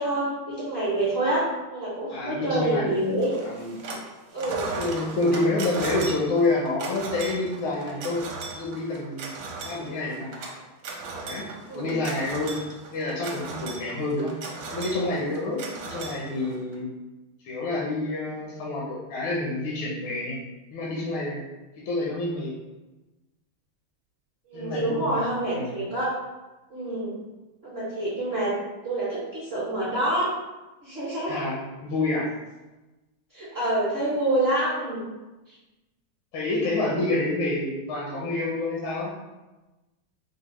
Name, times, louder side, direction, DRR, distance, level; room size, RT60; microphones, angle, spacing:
voice 1, 0.0-3.3 4.3-4.7 5.2-5.4 11.7-12.0 24.5-26.1 26.7-27.2 27.6-28.5 28.8-30.3 30.8-31.4 33.3-35.1, right 1 dB, 50° right, -9 dB, 0.7 m, -27 dB
voice 2, 2.1-3.0 3.4-3.8 4.8-8.2 8.5-9.3 9.6-10.3 11.2-11.5 11.7-12.6 12.9-14.3 14.7-16.9 17.4-20.4 20.7-21.4 21.8-22.5 24.5-25.2 25.5-25.8 31.3-32.3 36.3-39.1, left 2 dB, 85° left, -5 dB, 1.5 m, -28 dB
sound 1, 3.2-4.1 4.4-16.8, right 3 dB, 75° right, 1.3 m, -37 dB
5.0 x 2.0 x 3.0 m, 1.1 s
omnidirectional pair, 2.2 m